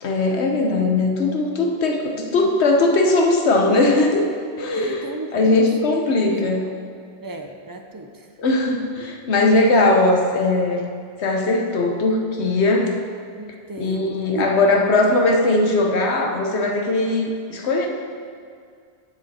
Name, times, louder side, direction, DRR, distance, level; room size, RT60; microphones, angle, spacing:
voice 1, 0.0-4.3 4.6-5.1 5.3-6.6 8.4-10.9 11.2-13.0 13.8-17.9, left 2 dB, 80° left, 2 dB, 1.3 m, -19 dB
voice 2, 2.2-2.5 4.8-5.5 6.3-6.5 7.2-8.3 13.4-14.6, right 2 dB, 30° right, 4 dB, 0.4 m, -34 dB
9.5 x 6.9 x 4.3 m, 2.2 s
omnidirectional pair, 1.1 m